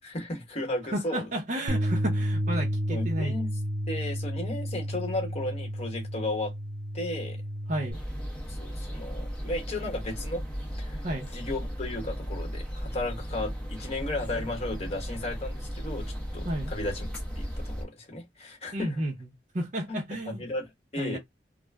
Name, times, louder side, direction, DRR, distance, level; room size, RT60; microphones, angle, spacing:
voice 1, 0.0-1.2 2.9-3.5 3.9-6.5 6.9-7.4 8.5-10.4 10.8-11.0 11.3-17.0 17.3-18.9 19.9-20.0 20.3-20.7 20.9-21.2, left 2 dB, 40° left, 1.0 m, -34 dB
voice 2, 0.9-3.3 7.7-8.0 11.0-11.3 16.4-16.7 18.7-19.3 19.5-20.4 21.0-21.2, right 1 dB, 45° right, 0.7 m, -32 dB
Bass guitar, 1.7-7.9, equal, 85° right, 0.6 m, -31 dB
sound 1, 7.9-17.8, equal, 5° left, 0.7 m, -36 dB
2.4 x 2.1 x 3.3 m
head